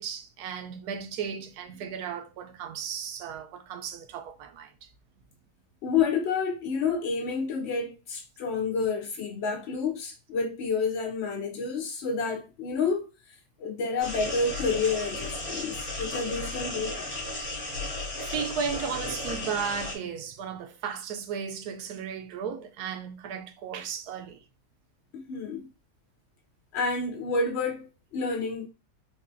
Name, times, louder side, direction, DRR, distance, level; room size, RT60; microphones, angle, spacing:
voice 1, 0.0-4.9 17.7-17.8 18.2-24.4, right 7 dB, 80° right, 1.1 m, -35 dB
voice 2, 5.8-17.1 25.1-25.7 26.7-28.7, left 4 dB, 75° left, 0.6 m, -29 dB
sound 1, 14.0-20.0, left 2 dB, 60° left, 2.3 m, -34 dB
5.3 x 2.3 x 2.5 m
omnidirectional pair, 1.7 m